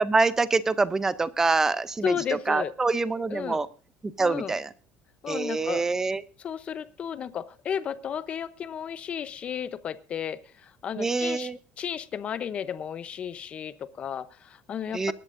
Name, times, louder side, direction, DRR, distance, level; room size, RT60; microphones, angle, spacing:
voice 1, 0.0-3.7 4.0-4.7 5.3-6.2 11.0-11.6 14.9-15.1, right 3 dB, 10° right, 15 dB, 0.6 m, -25 dB
voice 2, 2.0-2.7 3.3-3.6 4.2-4.6 5.2-5.8 6.4-11.5 11.8-15.1, left 8 dB, 30° left, 13 dB, 0.7 m, -33 dB
23.0 x 11.0 x 2.6 m, 0.36 s
cardioid pair, 170°, 4 cm